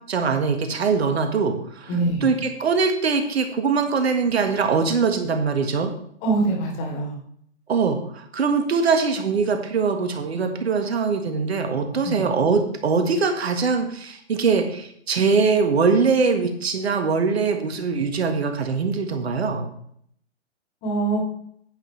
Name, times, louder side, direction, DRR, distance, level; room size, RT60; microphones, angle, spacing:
voice 1, 0.1-1.9 2.2-5.9 7.7-19.7, right 5 dB, 65° right, 6 dB, 1.7 m, -22 dB
voice 2, 1.9-2.3 6.2-7.2 12.0-12.2 20.8-21.2, right 3 dB, 30° left, 0 dB, 3.3 m, -24 dB
10.0 x 9.2 x 3.3 m, 0.66 s
figure-of-eight pair, 120°, 34 cm